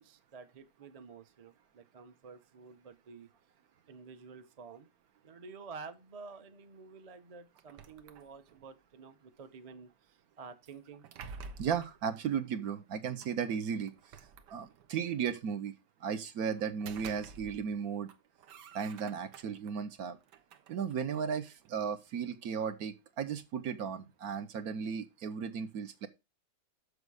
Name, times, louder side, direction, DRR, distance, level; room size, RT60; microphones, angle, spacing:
voice 1, 0.0-3.3 3.9-4.9 5.2-9.9 10.4-11.0, right 5 dB, 35° right, 0.6 m, -50 dB
sound 1, 7.6-8.7 10.7-12.0 13.2-13.3 13.9-15.0 16.6-17.8 18.1-19.7 20.2-21.8, right 5 dB, 85° right, 1.5 m, -50 dB
voice 2, 11.6-13.9 14.5-15.7 16.0-18.1 18.7-20.2 20.7-26.1, right 7 dB, 65° right, 1.2 m, -35 dB
6.6 x 6.5 x 4.7 m
omnidirectional pair, 1.8 m